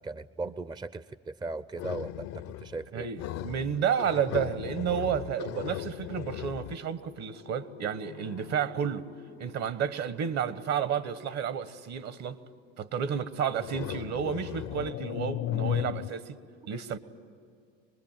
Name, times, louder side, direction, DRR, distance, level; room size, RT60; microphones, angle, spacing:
voice 1, 0.0-3.1, right 3 dB, 15° right, 0.6 m, -38 dB
sound 1, 1.8-2.9 3.2-10.1 11.0-11.3 13.6-16.1, left 13 dB, 60° left, 0.7 m, -37 dB
voice 2, 2.9-9.0 9.4-12.4 12.8-16.4 16.7-17.0, right 8 dB, 55° right, 1.3 m, -31 dB
25.0 x 20.0 x 9.1 m
hypercardioid pair, 75°, 31 cm